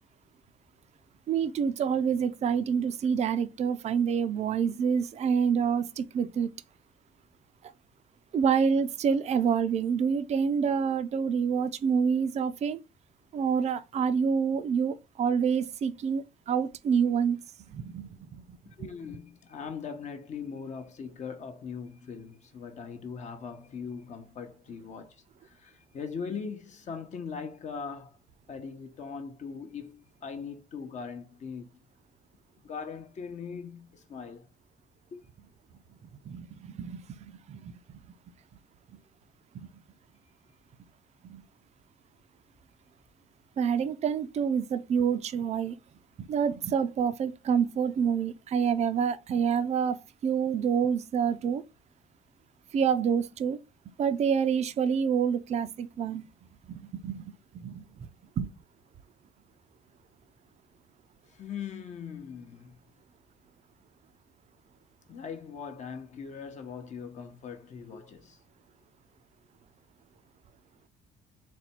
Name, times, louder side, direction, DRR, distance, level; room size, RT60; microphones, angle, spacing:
voice 1, 1.3-6.5 8.3-12.8 13.3-17.4 17.7-18.9 36.3-37.7 39.5-39.7 41.2-41.4 43.6-45.8 46.2-51.6 52.7-53.6 54.0-56.3 56.7-57.9 58.4-58.5, right 7 dB, 40° right, 0.4 m, -27 dB
voice 2, 18.8-28.2 28.5-31.7 32.6-34.5 35.1-35.2 61.3-62.8 65.1-68.4, left 6 dB, 45° left, 0.8 m, -40 dB
4.1 x 2.2 x 4.2 m
cardioid pair, 110°, 17 cm